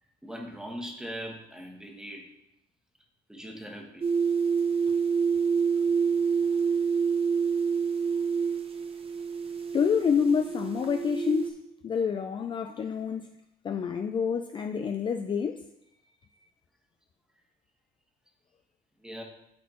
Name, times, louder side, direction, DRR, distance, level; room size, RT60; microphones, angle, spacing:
voice 1, 0.2-2.3 3.3-4.1 8.1-8.2 19.0-19.2, equal, 5° right, 1.4 m, -40 dB
sound 1, 4.0-11.5, right 6 dB, 35° right, 0.8 m, -27 dB
voice 2, 9.7-13.3 13.6-15.7, left 6 dB, 30° left, 0.3 m, -28 dB
12.0 x 4.2 x 2.9 m
cardioid pair, 110°, 17 cm